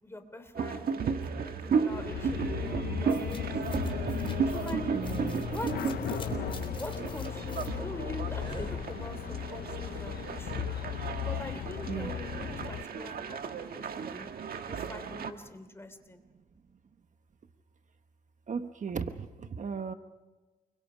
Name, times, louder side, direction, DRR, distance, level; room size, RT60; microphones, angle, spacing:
voice 1, 0.0-3.9 4.5-4.8 5.2-16.2, left 1 dB, 15° left, 8 dB, 3.1 m, -44 dB
sound 1, 0.6-15.3, right 6 dB, 70° right, 1.5 m, -34 dB
sound 2, 1.9-12.8, left 11 dB, 80° left, 0.6 m, -37 dB
sound 3, 3.1-9.4, left 4 dB, 35° left, 3.7 m, -42 dB
voice 2, 4.9-5.4 11.9-12.1 18.5-19.9, right 6 dB, 50° right, 9 dB, 1.2 m, -36 dB
29.0 x 23.0 x 5.2 m, 1.2 s
cardioid pair, 90°, 16 cm